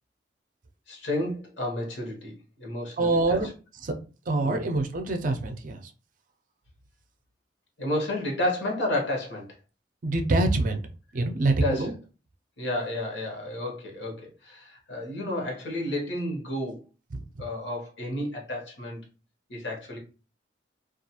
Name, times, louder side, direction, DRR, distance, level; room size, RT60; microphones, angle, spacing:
voice 1, 0.9-3.4 4.4-4.6 7.8-9.5 11.6-11.9 12.6-16.8 17.4-19.0 19.5-20.0, left 1 dB, 75° left, 0 dB, 1.0 m, -31 dB
voice 2, 3.0-3.5 3.8-3.9 4.3-5.9 10.0-10.8 11.1-11.9, right 2 dB, 45° right, 5 dB, 0.4 m, -25 dB
2.4 x 2.3 x 2.8 m, 0.34 s
head